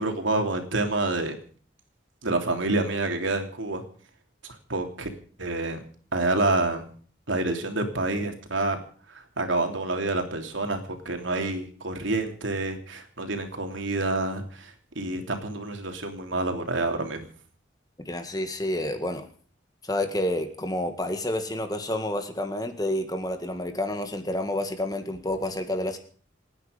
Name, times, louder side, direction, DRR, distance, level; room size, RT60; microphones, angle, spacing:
voice 1, 0.0-1.3 2.2-3.8 4.4-5.1 5.4-5.8 6.1-6.9 7.3-8.8 9.1-17.2, right 2 dB, 75° right, 5 dB, 3.1 m, -28 dB
voice 2, 18.1-19.2 19.8-26.0, left 1 dB, 20° left, 7 dB, 2.0 m, -29 dB
28.5 x 9.8 x 5.2 m, 0.43 s
head